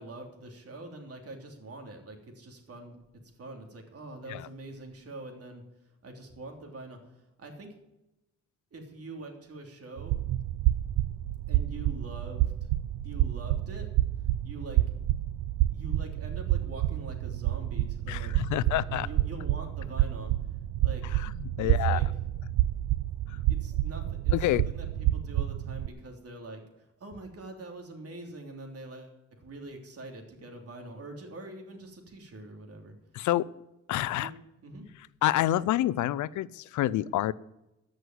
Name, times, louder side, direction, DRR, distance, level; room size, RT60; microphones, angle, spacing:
voice 1, 0.0-3.0 3.4-5.6 6.0-7.8 8.7-10.2 11.5-12.7 13.0-13.9 14.4-14.8 15.7-20.3 20.8-21.2 21.6-22.1 23.5-32.9 34.1-34.3 34.6-34.9, right 2 dB, 50° right, 3 dB, 3.3 m, -44 dB
sound 1, 10.0-25.9, right 14 dB, 85° right, 0.6 m, -29 dB
voice 2, 18.1-19.1 21.0-22.0 23.3-23.4 24.3-24.6 33.1-33.5 33.9-34.3 35.2-37.3, left 14 dB, 75° left, 19 dB, 0.6 m, -28 dB
13.5 x 6.4 x 9.4 m, 0.92 s
cardioid pair, 90°, 30 cm